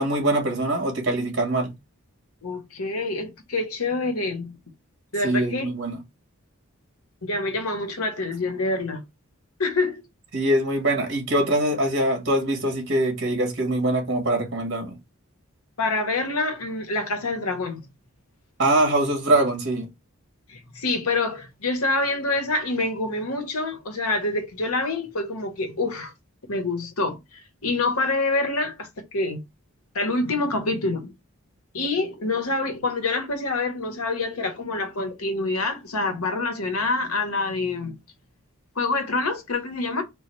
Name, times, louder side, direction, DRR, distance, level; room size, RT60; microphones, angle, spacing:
voice 1, 0.0-1.7 5.2-6.0 10.3-15.0 18.6-19.9, right 1 dB, 55° right, 2.0 m, -23 dB
voice 2, 2.4-4.6 5.1-5.7 7.2-9.0 9.6-10.0 15.8-17.8 20.5-26.1 26.5-27.2 27.6-29.4 29.9-31.1 31.7-38.0 38.8-40.0, left 2 dB, 85° left, 1.1 m, -26 dB
4.5 x 2.3 x 4.4 m
head